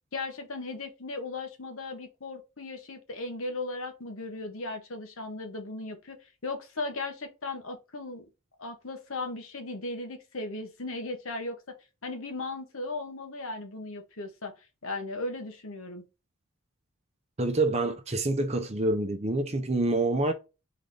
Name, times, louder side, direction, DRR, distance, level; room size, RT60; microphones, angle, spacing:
voice 1, 0.1-8.2 8.6-11.7 12.0-14.5 14.8-16.0, left 2 dB, 65° left, 1.1 m, -37 dB
voice 2, 17.4-20.3, right 2 dB, 30° right, 0.7 m, -27 dB
4.0 x 3.5 x 3.8 m
head